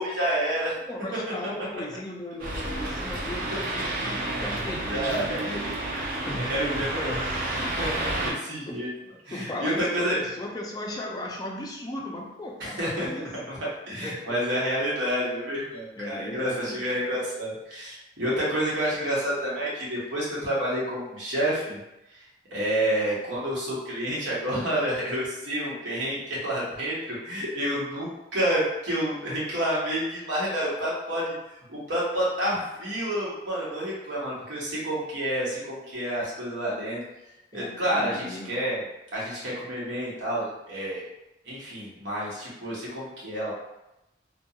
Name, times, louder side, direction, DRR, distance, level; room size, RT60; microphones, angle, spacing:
voice 1, 0.0-0.8 3.3-3.4 4.9-5.4 6.4-6.8 7.5-8.9 9.2-10.2 12.6-13.1 13.5-13.6 13.9-21.8 22.5-26.9 27.2-31.3 31.7-37.0 37.5-38.8 39.1-41.0 41.4-43.5, equal, 85° right, -7 dB, 1.0 m, -29 dB
voice 2, 0.9-5.8 6.3-7.2 8.7-8.8 9.3-13.3 14.0-14.4 16.0-17.2 37.5-38.7, left 1 dB, 20° left, -1 dB, 0.3 m, -36 dB
sound 1, 2.4-8.3, right 1 dB, 50° right, 0.5 m, -30 dB
2.3 x 2.2 x 2.7 m, 0.91 s
head